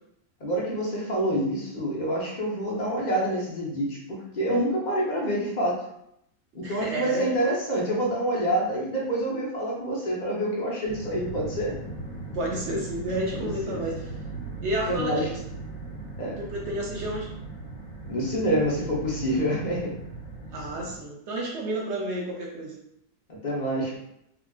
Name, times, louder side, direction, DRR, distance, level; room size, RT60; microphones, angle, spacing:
voice 1, 0.4-5.8 6.5-11.7 13.4-13.9 14.9-15.3 16.2-16.4 18.1-19.9 23.3-24.0, right 1 dB, 40° left, -4 dB, 0.7 m, -27 dB
voice 2, 6.6-7.3 12.3-14.1 14.6-15.4 16.4-17.3 20.5-22.7, right 1 dB, 65° right, -2 dB, 0.8 m, -31 dB
sound 1, 10.9-21.0, right 3 dB, 60° left, 1.2 m, -38 dB
3.5 x 2.4 x 2.3 m, 0.78 s
omnidirectional pair, 1.4 m